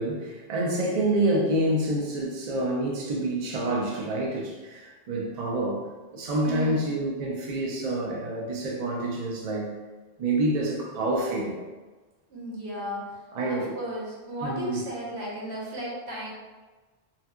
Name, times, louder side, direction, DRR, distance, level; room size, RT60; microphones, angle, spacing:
voice 1, 0.0-5.8 6.1-9.7 10.2-11.6 13.3-13.8 14.4-14.8, right 1 dB, 50° right, -2 dB, 0.6 m, -27 dB
voice 2, 6.4-6.8 12.3-13.2 13.5-16.3, right 1 dB, 80° right, -5 dB, 1.2 m, -34 dB
3.3 x 2.8 x 2.3 m, 1.2 s
omnidirectional pair, 1.1 m